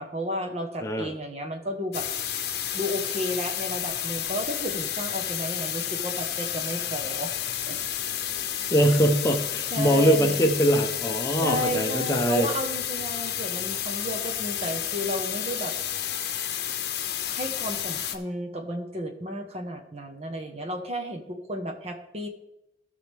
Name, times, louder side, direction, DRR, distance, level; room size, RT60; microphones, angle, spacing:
voice 1, 0.0-2.1 2.7-7.3 7.7-7.8 9.7-10.4 11.4-15.7 17.1-22.3, equal, 35° right, 5 dB, 1.2 m, -33 dB
sound 1, 1.9-18.2, left 10 dB, 60° left, 0.9 m, -31 dB
voice 2, 8.7-12.5, equal, 15° left, 3 dB, 0.9 m, -22 dB
17.0 x 6.0 x 3.5 m, 0.89 s
head